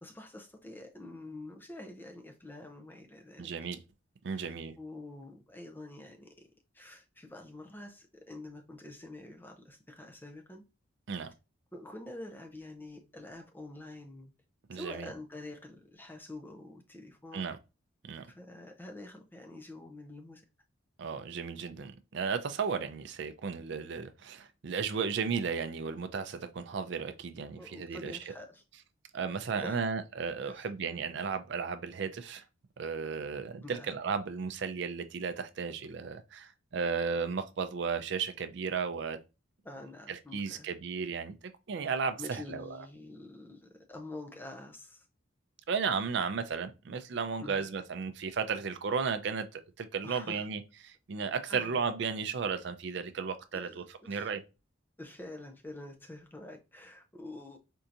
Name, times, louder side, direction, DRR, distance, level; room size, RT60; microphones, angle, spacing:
voice 1, 0.0-3.5 4.3-6.5 6.7-10.6 11.7-14.3 14.7-17.5 18.3-20.4 27.6-28.6 29.5-29.8 30.4-30.7 33.6-33.9 39.6-40.7 41.8-41.9 42.2-45.1 47.4-47.7 50.0-50.5 51.5-51.8 53.5-54.3 55.0-57.6, left 2 dB, 10° left, 0.4 m, -47 dB
voice 2, 3.4-3.8 4.2-4.7 11.1-11.3 14.7-15.1 17.3-17.6 18.0-18.3 21.0-28.3 29.1-32.4 32.8-39.2 40.1-41.4 41.7-42.8 45.7-54.4, right 5 dB, 55° right, 0.4 m, -34 dB
4.4 x 2.7 x 2.4 m
head